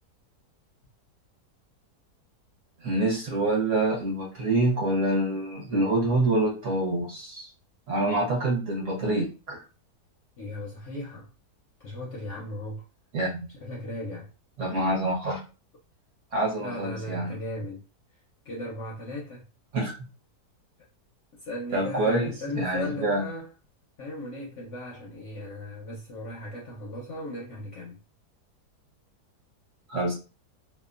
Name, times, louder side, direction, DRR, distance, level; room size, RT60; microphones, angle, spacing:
voice 1, 2.8-7.5 7.9-9.6 13.1-13.5 14.6-15.4 16.3-17.3 19.7-19.9 21.7-23.3 29.9-30.1, right 2 dB, 55° right, 1.0 m, -26 dB
voice 2, 10.4-11.3 11.8-12.8 13.6-14.3 16.6-17.8 18.4-19.4 21.4-23.5 24.0-28.0, left 1 dB, 65° left, 0.7 m, -36 dB
2.8 x 2.1 x 2.4 m
omnidirectional pair, 1.7 m